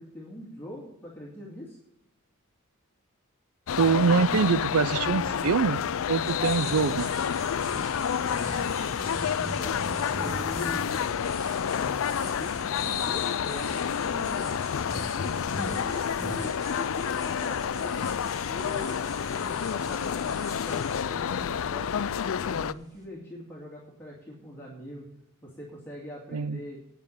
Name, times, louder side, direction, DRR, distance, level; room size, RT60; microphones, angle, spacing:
voice 1, 0.0-1.8 9.4-11.2 11.8-14.6 15.1-18.1 18.5-21.9 22.3-25.1 25.4-26.8, left 1 dB, 10° left, -4 dB, 2.2 m, -42 dB
sound 1, 3.7-22.7, left 7 dB, 65° left, 0.4 m, -29 dB
voice 2, 3.8-5.8 6.1-7.1 26.3-26.6, right 6 dB, 75° right, 17 dB, 0.5 m, -24 dB
sound 2, 4.6-23.0, equal, 15° right, 3.4 m, -43 dB
9.1 x 8.3 x 8.6 m, 0.78 s
head